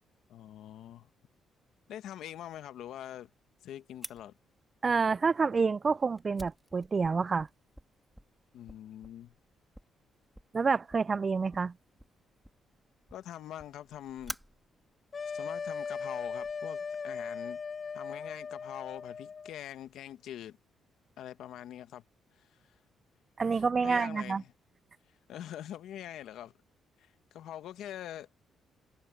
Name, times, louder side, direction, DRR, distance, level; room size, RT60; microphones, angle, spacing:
voice 1, 0.3-1.1 1.9-3.3 3.6-4.3 8.5-9.3 13.1-14.4 15.3-17.6 17.9-20.6 21.2-22.0 22.4-22.5 23.5-24.5 25.3-26.5 27.0-28.3, left 11 dB, 80° left, 1.4 m, -44 dB
Fire, 4.0-16.5, equal, ahead, 2.6 m, -51 dB
voice 2, 4.8-7.5 10.5-11.7 23.4-24.4, right 4 dB, 35° right, 0.3 m, -28 dB
sound 1, 15.1-19.5, left 5 dB, 40° left, 0.7 m, -38 dB
cardioid pair, 90°, 0 cm